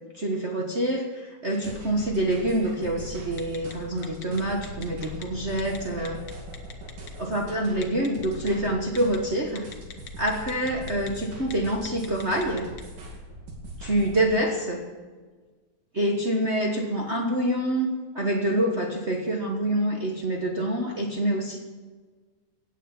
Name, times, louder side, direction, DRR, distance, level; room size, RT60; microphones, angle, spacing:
voice 1, 0.1-6.2 7.2-9.7 10.2-12.7 13.8-14.8 15.9-21.6, right 1 dB, 65° right, 0 dB, 0.6 m, -26 dB
sound 1, 1.5-14.2, equal, 80° right, 4.0 m, -41 dB
Telephone, 3.4-3.7 4.0-5.2 5.6-5.8 6.0-7.1 7.8-8.5 9.0-9.2 9.6-11.1 11.4-11.5 11.9-12.8, left 7 dB, 80° left, 0.8 m, -41 dB
16.5 x 8.4 x 7.2 m, 1.4 s
omnidirectional pair, 3.5 m